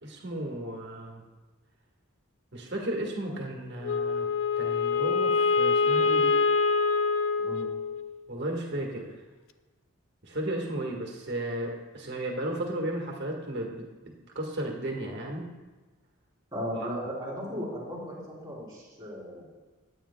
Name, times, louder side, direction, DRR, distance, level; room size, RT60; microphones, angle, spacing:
voice 1, 0.0-1.2 2.5-4.3 4.6-6.3 8.3-9.1 10.2-15.5 16.7-16.9, right 1 dB, 55° right, 0 dB, 1.6 m, -34 dB
Wind instrument woodwind instrument, 3.8-8.3, left 4 dB, 60° left, 0.4 m, -25 dB
voice 2, 16.5-19.4, equal, 20° right, -4 dB, 3.4 m, -36 dB
15.0 x 9.1 x 2.3 m, 1.3 s
head